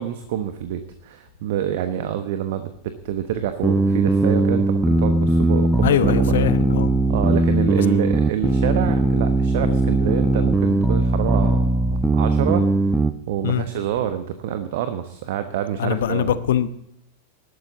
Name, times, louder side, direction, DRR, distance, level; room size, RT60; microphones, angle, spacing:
voice 1, 0.0-6.4 7.1-12.7 13.3-16.4, right 10 dB, 50° right, 9 dB, 1.1 m, -27 dB
sound 1, 3.6-13.1, right 2 dB, 5° right, 0.8 m, -19 dB
voice 2, 5.8-6.9 13.4-13.6 15.8-16.7, left 11 dB, 60° left, 14 dB, 0.9 m, -22 dB
20.0 x 12.0 x 4.0 m, 0.75 s
figure-of-eight pair, 90°, 0 cm